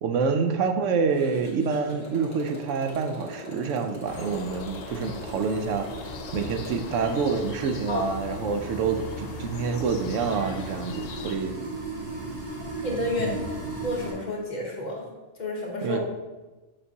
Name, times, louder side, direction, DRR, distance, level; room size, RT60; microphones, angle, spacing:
voice 1, 0.0-6.1 6.3-11.5 13.2-13.4 15.8-16.0, right 5 dB, 80° right, 5 dB, 0.9 m, -27 dB
Motorcycle, 1.1-7.0, left 1 dB, 15° left, 1.3 m, -42 dB
sound 1, 4.1-11.4, left 6 dB, 90° left, 0.9 m, -41 dB
sound 2, 5.0-14.1, right 2 dB, 60° right, 2.0 m, -37 dB
voice 2, 12.8-13.4 13.8-15.0 15.4-16.0, left 1 dB, 40° left, -1 dB, 1.0 m, -30 dB
6.9 x 5.2 x 2.8 m, 1.1 s
omnidirectional pair, 1.3 m